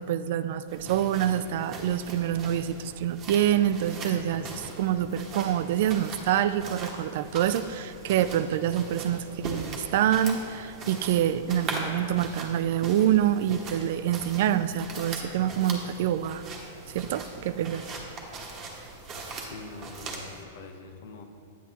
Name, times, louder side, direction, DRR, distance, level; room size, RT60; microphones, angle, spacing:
voice 1, 0.0-16.4 16.9-17.9, right 10 dB, 60° right, 13 dB, 0.3 m, -26 dB
sound 1, 0.7-20.4, right 3 dB, 30° right, 1.1 m, -40 dB
voice 2, 19.4-21.2, left 4 dB, 70° left, 6 dB, 0.8 m, -44 dB
9.2 x 8.3 x 2.9 m, 2.8 s
hypercardioid pair, 145°, 0 cm